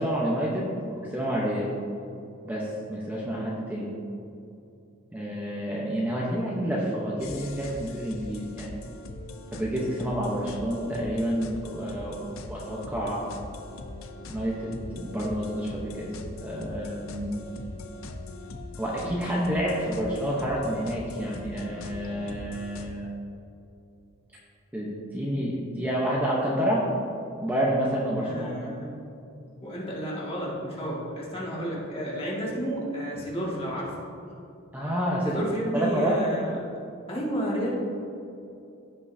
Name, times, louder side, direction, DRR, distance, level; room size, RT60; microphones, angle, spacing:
voice 1, 0.0-1.7 2.4-3.9 5.1-8.7 9.5-13.3 14.3-16.1 16.4-17.3 18.8-23.1 24.7-26.8 27.4-28.7 34.7-35.4 35.7-36.2, equal, 10° right, -5 dB, 0.9 m, -29 dB
sound 1, 7.2-22.9, left 2 dB, 75° left, 0.6 m, -41 dB
voice 2, 28.2-28.9 29.6-34.0 35.2-36.6 37.1-37.7, equal, 30° left, -5 dB, 2.0 m, -31 dB
15.5 x 5.4 x 2.7 m, 2.7 s
head